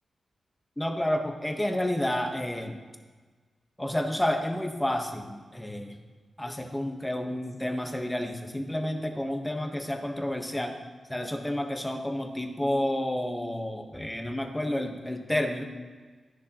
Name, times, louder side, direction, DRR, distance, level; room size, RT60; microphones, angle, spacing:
voice 1, 0.8-2.8 3.8-6.0 6.4-10.8 11.1-15.7, left 1 dB, 10° left, 3 dB, 1.2 m, -30 dB
14.5 x 10.5 x 3.0 m, 1.4 s
wide cardioid pair, 100°, 0 cm